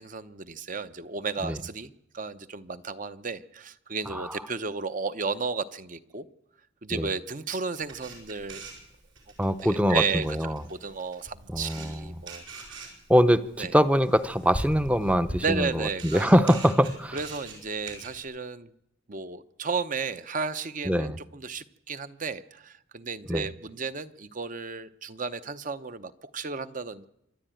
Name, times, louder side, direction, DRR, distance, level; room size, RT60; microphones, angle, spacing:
voice 1, 0.0-6.3 6.8-8.7 9.6-12.9 13.6-13.7 15.4-16.6 17.1-18.7 19.1-27.0, right 5 dB, 40° right, 13 dB, 0.8 m, -33 dB
Camera, 7.8-18.2, right 1 dB, 75° right, 6.3 m, -42 dB
voice 2, 9.4-10.6 11.5-12.0 13.1-17.2 20.8-21.2 23.3-23.4, equal, 5° right, 13 dB, 0.6 m, -23 dB
26.0 x 11.0 x 9.1 m, 0.83 s
head